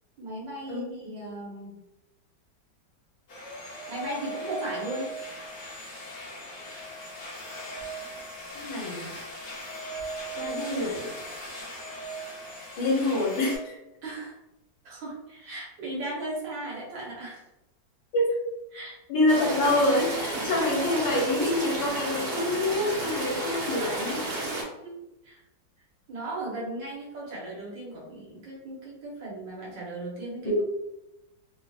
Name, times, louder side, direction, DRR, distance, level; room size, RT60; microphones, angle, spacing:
voice 1, 0.2-1.7 3.9-5.1 14.0-14.4 14.8-17.4 18.7-19.0 24.4-25.4 26.1-30.6, right 2 dB, 75° right, -4 dB, 1.8 m, -37 dB
sound 1, 3.3-13.6, right 1 dB, 45° left, 1.1 m, -39 dB
voice 2, 8.5-9.1 10.4-11.1 12.8-13.8 18.1-18.2 19.1-24.3 30.4-30.6, left 1 dB, 65° left, -2 dB, 1.4 m, -26 dB
sound 2, 19.3-24.6, right 1 dB, 45° right, 0.8 m, -32 dB
3.8 x 2.8 x 2.4 m, 0.91 s
omnidirectional pair, 2.0 m